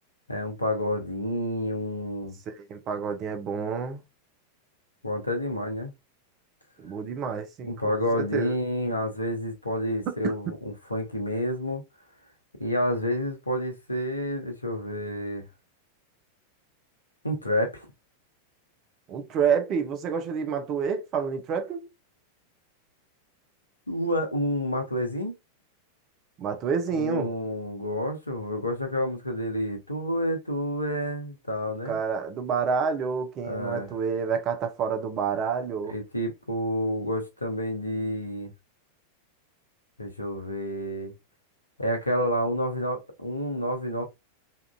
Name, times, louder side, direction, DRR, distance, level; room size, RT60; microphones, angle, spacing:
voice 1, 0.3-2.4 5.0-5.9 7.6-11.8 12.6-15.5 17.2-17.9 23.9-25.4 26.9-32.0 33.4-33.9 35.9-38.5 40.0-41.1 41.8-44.0, equal, 85° left, 0.6 m, -29 dB
voice 2, 2.5-4.0 6.8-8.5 10.1-10.3 19.1-21.9 26.4-27.3 31.9-35.9, right 6 dB, 35° right, 0.6 m, -29 dB
2.8 x 2.4 x 2.3 m
figure-of-eight pair, 90°, 0 cm